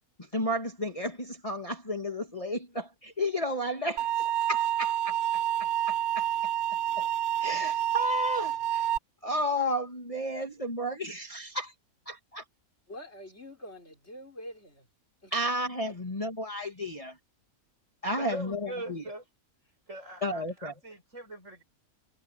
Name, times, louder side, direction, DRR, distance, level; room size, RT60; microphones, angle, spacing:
voice 1, 0.3-4.1 4.5-5.2 5.6-6.3 7.0-7.1 7.4-8.9 9.2-11.7 12.1-12.4 15.3-17.1 18.0-19.0 20.2-20.7, equal, 20° left, 2.6 m, -32 dB
sound 1, 4.0-9.0, right 11 dB, 80° right, 1.1 m, -28 dB
voice 2, 12.9-14.9 15.2-15.3 15.8-15.9, left 1 dB, 45° left, 5.6 m, -45 dB
voice 3, 18.1-19.2 19.9-21.6, right 1 dB, 55° right, 8.1 m, -41 dB
omnidirectional pair, 1.6 m